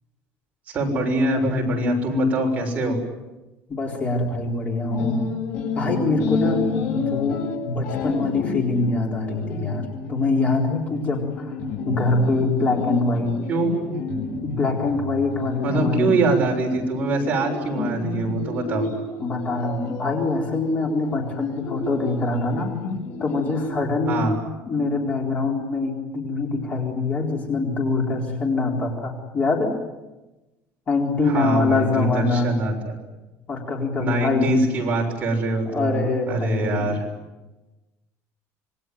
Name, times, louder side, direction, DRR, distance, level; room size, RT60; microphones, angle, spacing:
voice 1, 0.7-3.0 13.5-13.7 15.6-18.9 24.1-24.3 31.3-33.0 34.0-36.0 36.3-37.0, right 2 dB, 25° right, 0 dB, 6.7 m, -23 dB
voice 2, 3.7-5.2 5.7-11.5 11.8-13.3 14.4-16.3 19.2-22.7 23.2-24.3 24.7-29.8 30.9-32.5 33.5-34.5 35.7-36.9, left 3 dB, 25° left, 1 dB, 4.1 m, -24 dB
sound 1, 4.9-23.7, left 3 dB, 55° left, 7.6 m, -30 dB
27.0 x 23.0 x 9.4 m, 1.1 s
cardioid pair, 170°, 6 cm